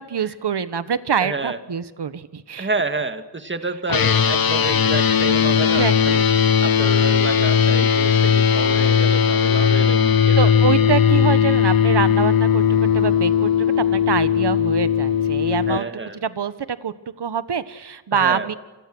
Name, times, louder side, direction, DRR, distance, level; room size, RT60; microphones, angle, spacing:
voice 1, 0.0-2.7 5.6-6.2 6.9-7.0 10.4-12.6 12.9-13.5 13.9-15.9 16.2-18.5, right 7 dB, 65° right, 13 dB, 1.5 m, -25 dB
voice 2, 1.2-1.6 2.6-6.2 6.6-10.5 11.2-11.4 15.7-16.2 18.1-18.5, right 3 dB, 25° right, 8 dB, 2.1 m, -29 dB
sound 1, 3.9-15.8, left 7 dB, 55° left, 1.1 m, -18 dB
29.0 x 26.0 x 6.3 m, 1.2 s
wide cardioid pair, 110°, 42 cm